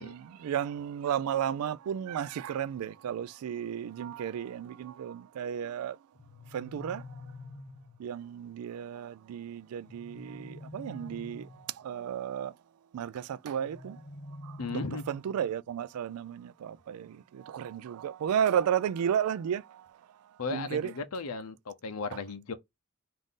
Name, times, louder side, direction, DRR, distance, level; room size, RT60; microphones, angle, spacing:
voice 1, 0.0-6.0 6.5-7.0 8.0-12.5 12.9-14.0 14.4-14.8 15.1-19.9 20.5-20.9, right 9 dB, 85° right, 0.3 m, -33 dB
sound 1, 6.1-8.1 9.8-11.8 13.6-15.5, left 2 dB, 50° left, 0.8 m, -47 dB
voice 2, 14.6-15.0 20.4-22.5, left 4 dB, 90° left, 0.6 m, -36 dB
3.7 x 2.5 x 3.6 m
head